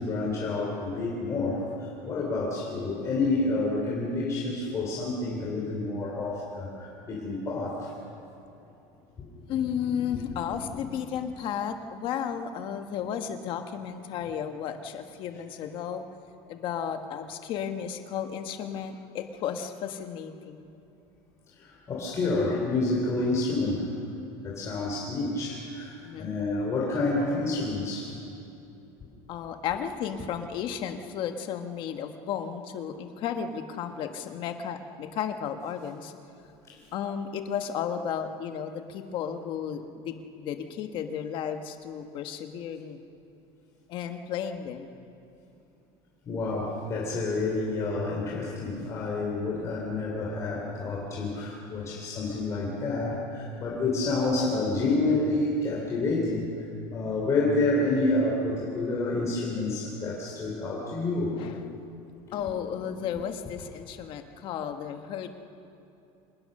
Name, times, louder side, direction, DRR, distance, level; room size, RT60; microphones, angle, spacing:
voice 1, 0.0-8.0 9.2-9.3 21.5-23.9 24.4-28.2 36.7-36.8 46.3-61.3, left 2 dB, 25° left, -4 dB, 3.1 m, -29 dB
voice 2, 9.4-16.0 16.5-20.7 26.0-26.3 29.3-36.1 36.9-43.0 43.9-44.9 60.7-61.0 61.4-61.9 62.3-65.3, left 8 dB, 40° left, 6 dB, 1.3 m, -33 dB
25.5 x 19.5 x 6.6 m, 2.8 s
cardioid pair, 175°, 13 cm